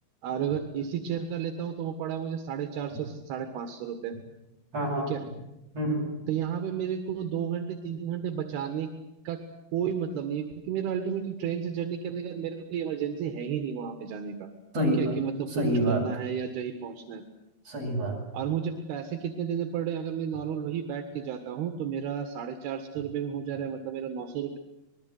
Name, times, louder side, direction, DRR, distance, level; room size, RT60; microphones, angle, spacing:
voice 1, 0.2-4.2 5.1-5.2 6.3-8.9 9.3-9.4 9.7-14.5 15.0-17.2 18.3-24.6, right 8 dB, 80° right, 6 dB, 3.5 m, -32 dB
voice 2, 4.7-5.1 5.7-6.1 14.7-15.2 15.5-16.0 17.7-18.2, right 1 dB, 40° right, -1 dB, 9.1 m, -27 dB
27.5 x 20.5 x 7.8 m, 0.91 s
omnidirectional pair, 4.4 m